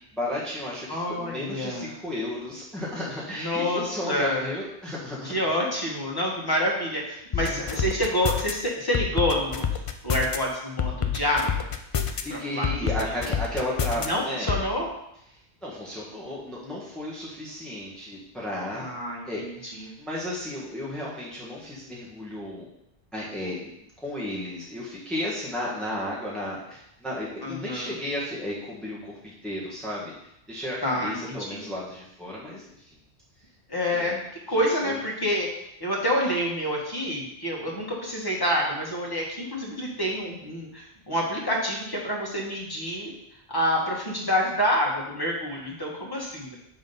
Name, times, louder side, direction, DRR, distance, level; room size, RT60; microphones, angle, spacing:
voice 1, 0.1-5.3 11.9-14.6 15.6-18.9 19.2-19.4 19.8-22.7 23.1-23.7 24.0-30.1 30.5-32.9 33.9-34.1 34.8-35.0, left 1 dB, ahead, -6 dB, 1.3 m, -33 dB
voice 2, 0.9-1.9 3.4-4.5 5.3-9.6 10.0-11.6 12.3-12.7 13.1-13.2 13.9-14.9 18.7-19.9 27.4-28.0 30.8-31.6 33.7-34.2 34.5-35.5 35.8-43.1 43.5-46.5, equal, 20° left, -3 dB, 1.5 m, -28 dB
sound 1, 7.3-8.5 8.9-10.4 10.8-12.2 12.6-14.1 14.5-14.6, left 8 dB, 50° left, 0.4 m, -27 dB
7.1 x 3.8 x 5.4 m, 0.80 s
omnidirectional pair, 1.1 m